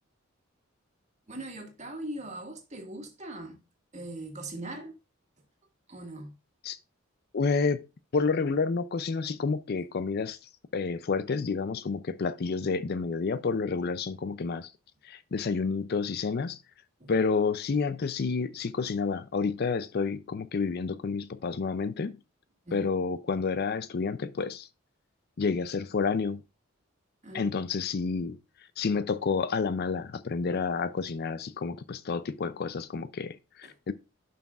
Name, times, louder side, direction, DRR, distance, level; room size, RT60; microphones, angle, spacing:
voice 1, 1.3-3.6 3.9-4.9 5.9-6.3 17.0-17.1 22.7-22.9 27.2-27.5 33.6-33.7, right 1 dB, 35° right, 1.8 m, -40 dB
voice 2, 7.3-7.8 8.1-10.4 10.7-14.7 15.0-16.6 17.1-22.2 22.7-24.7 25.4-26.4 27.3-28.4 28.8-33.9, left 4 dB, 50° left, 0.4 m, -29 dB
11.0 x 5.9 x 2.4 m
head